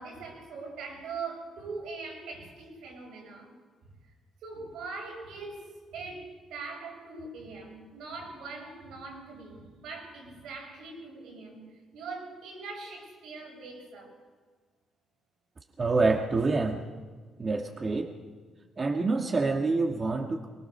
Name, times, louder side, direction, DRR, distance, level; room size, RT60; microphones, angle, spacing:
voice 1, 0.0-3.5 4.4-14.2, right 4 dB, 85° right, 0 dB, 7.2 m, -42 dB
voice 2, 15.8-16.8 17.4-18.1 18.8-20.5, right 3 dB, 35° right, 3 dB, 1.6 m, -27 dB
23.5 x 20.5 x 6.8 m, 1.5 s
cardioid pair, 90°, 0 cm